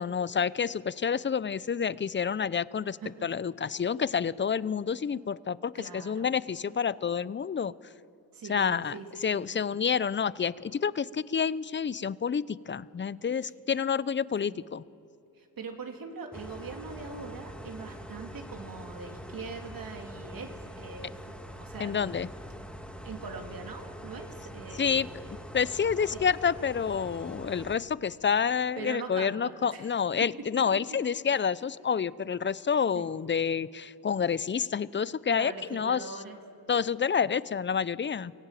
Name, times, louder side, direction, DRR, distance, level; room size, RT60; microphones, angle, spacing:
voice 1, 0.0-7.7 8.5-14.8 21.8-22.3 24.7-25.1 25.5-36.0 36.7-38.3, left 7 dB, 30° left, 19 dB, 0.6 m, -29 dB
voice 2, 5.7-6.3 8.3-9.6 14.5-14.6 15.3-21.3 21.6-22.1 23.0-25.3 26.1-26.2 28.8-29.9 32.9-33.0 35.3-36.4, right 4 dB, 60° right, 3 dB, 3.1 m, -42 dB
sound 1, 16.3-27.8, equal, 5° left, 1.9 m, -44 dB
24.0 x 15.0 x 9.1 m, 2.7 s
supercardioid pair, 55°, 38 cm